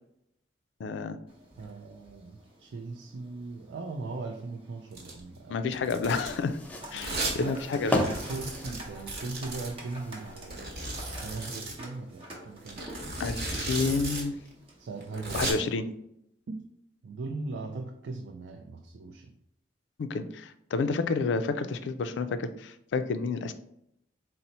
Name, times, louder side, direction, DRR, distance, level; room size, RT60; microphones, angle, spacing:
voice 1, 0.8-1.2 5.5-6.6 6.9-8.1 13.2-14.3 15.3-15.8 20.0-23.5, left 4 dB, 75° left, 10 dB, 0.3 m, -30 dB
sound 1, 1.3-15.7, right 1 dB, 30° right, 0.8 m, -49 dB
voice 2, 1.6-5.6 5.8-6.3 7.4-12.9 13.4-13.9 14.8-15.6 16.5-16.6 17.0-19.3, right 3 dB, 70° right, 3 dB, 0.4 m, -40 dB
Domestic sounds home sounds, 4.9-5.2 5.7-6.4 7.0-7.4 7.7-7.8 8.0-9.7 10.5-11.8 12.7-14.2 14.5-14.6 15.0-15.5, right 2 dB, 55° right, 1.1 m, -35 dB
sound 2, 6.0-11.6, left 1 dB, 10° left, 0.4 m, -36 dB
4.2 x 2.0 x 3.9 m, 0.77 s
head